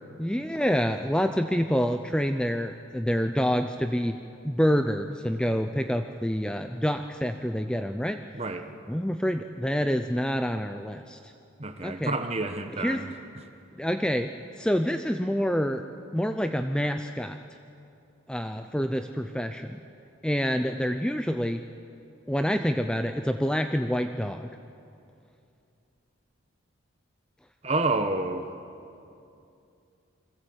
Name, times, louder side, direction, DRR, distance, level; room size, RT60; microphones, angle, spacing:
voice 1, 0.2-4.2 4.4-8.2 8.9-11.2 11.8-12.1 12.8-13.0 13.8-14.3 14.6-15.8 16.1-17.4 18.3-19.8 20.2-21.6 22.3-24.5, equal, 5° left, 7 dB, 0.5 m, -27 dB
voice 2, 8.3-8.7 11.6-13.1 27.6-28.5, right 2 dB, 30° right, 7 dB, 1.4 m, -29 dB
28.5 x 21.5 x 8.0 m, 2.6 s
head